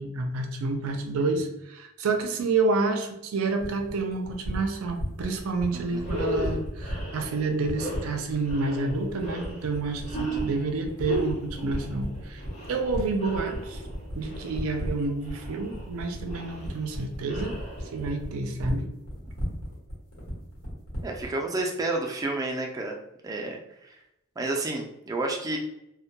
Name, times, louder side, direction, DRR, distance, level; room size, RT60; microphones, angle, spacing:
voice 1, 0.0-12.4 12.7-13.8 14.1-17.6 17.9-18.9, right 3 dB, 85° right, 5 dB, 0.4 m, -29 dB
sound 1, 3.6-21.4, equal, 80° left, 1.0 m, -35 dB
sound 2, 5.5-5.6 5.9-18.3, right 1 dB, 35° left, 0.6 m, -36 dB
voice 2, 5.7-6.0 10.1-10.4 21.0-23.0 23.2-23.9 24.4-25.6, right 2 dB, 15° right, 0 dB, 0.3 m, -31 dB
2.1 x 2.1 x 2.7 m, 0.86 s
head